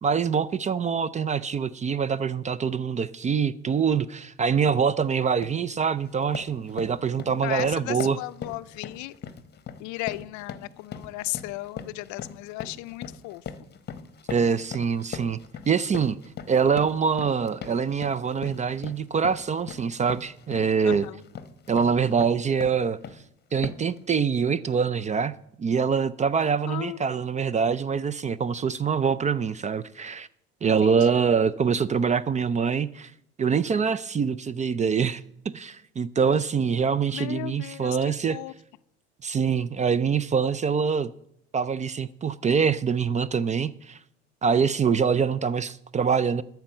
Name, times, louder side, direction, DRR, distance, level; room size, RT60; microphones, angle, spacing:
voice 1, 0.0-8.2 14.3-15.4 15.7-16.2 16.5-21.1 21.7-23.0 23.5-30.3 30.6-33.1 33.4-38.4 39.2-41.1 41.5-44.0 44.4-46.4, right 6 dB, 20° right, 0.4 m, -24 dB
sound 1, 4.6-4.8 5.2-5.6 6.0-23.3 23.6-24.0, left 6 dB, 30° left, 1.0 m, -40 dB
voice 2, 7.4-9.1 9.8-13.4 20.8-21.2 26.7-27.0 30.6-31.2 37.1-38.0 38.3-38.5, left 19 dB, 60° left, 0.5 m, -35 dB
13.0 x 4.5 x 7.1 m
hypercardioid pair, 75°, 33 cm